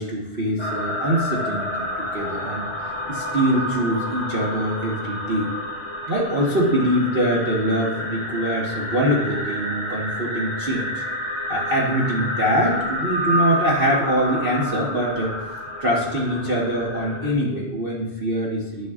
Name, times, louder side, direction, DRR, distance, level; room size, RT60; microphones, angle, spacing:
voice 1, 0.0-5.5 6.1-11.0 11.5-15.3 15.8-18.9, equal, 65° right, -5 dB, 0.5 m, -23 dB
sound 1, 0.6-17.3, left 1 dB, 20° left, 1.4 m, -29 dB
11.5 x 6.1 x 3.7 m, 1.0 s
omnidirectional pair, 3.4 m